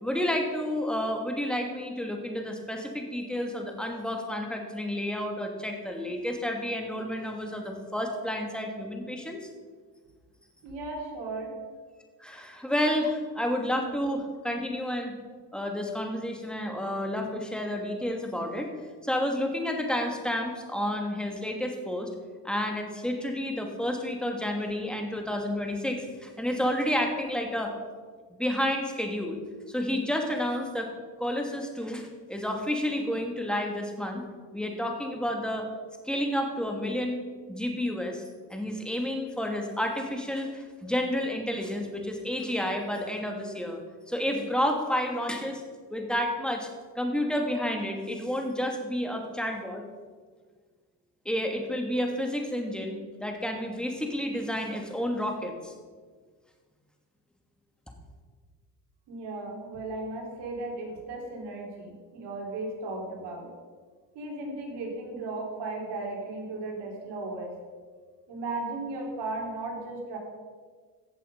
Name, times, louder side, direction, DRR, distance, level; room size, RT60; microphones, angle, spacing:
voice 1, 0.0-9.4 12.2-15.1 15.5-18.7 19.0-22.1 22.4-27.7 28.3-29.4 29.7-30.9 31.2-34.2 34.5-35.7 36.0-37.2 37.5-38.2 38.5-43.8 44.1-45.6 45.9-46.7 47.0-49.8 51.2-55.7, left 1 dB, ahead, 2 dB, 2.4 m, -30 dB
voice 2, 10.6-11.5 59.1-63.5 64.2-67.5 68.3-70.2, right 2 dB, 75° right, 0 dB, 3.6 m, -36 dB
15.0 x 7.6 x 5.4 m, 1.5 s
supercardioid pair, 85°, 42 cm